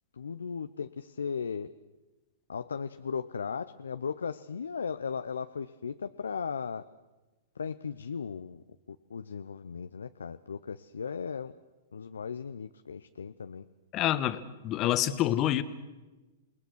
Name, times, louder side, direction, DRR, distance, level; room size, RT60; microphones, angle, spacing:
voice 1, 0.1-1.7 2.5-6.8 7.6-11.5 11.9-13.6, left 6 dB, 80° left, 10 dB, 0.7 m, -37 dB
voice 2, 13.9-15.6, left 13 dB, 35° left, 13 dB, 1.4 m, -27 dB
28.5 x 20.0 x 6.3 m, 1.1 s
hypercardioid pair, 110°, 0 cm